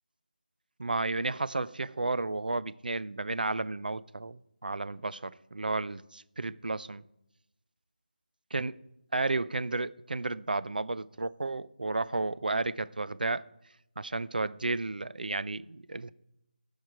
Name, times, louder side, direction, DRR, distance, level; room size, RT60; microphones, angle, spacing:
voice 1, 0.8-7.0 8.5-8.8 9.1-13.4 14.0-16.1, right 3 dB, 65° right, 0.5 m, -32 dB
13.5 x 4.8 x 4.5 m
figure-of-eight pair, 180°, 5 cm